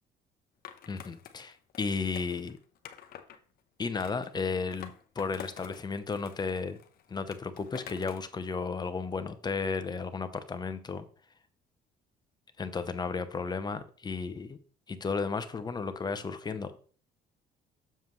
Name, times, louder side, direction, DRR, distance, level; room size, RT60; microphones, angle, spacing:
Skateboard, 0.6-3.4 4.0-5.8 6.1-8.3, left 10 dB, 65° left, 0.9 m, -48 dB
voice 1, 0.9-2.6 3.8-6.8 7.1-11.0 12.6-14.6 14.9-16.9, left 4 dB, 25° left, 10 dB, 0.8 m, -34 dB
7.3 x 7.0 x 3.1 m, 0.43 s
cardioid pair, 110°, 17 cm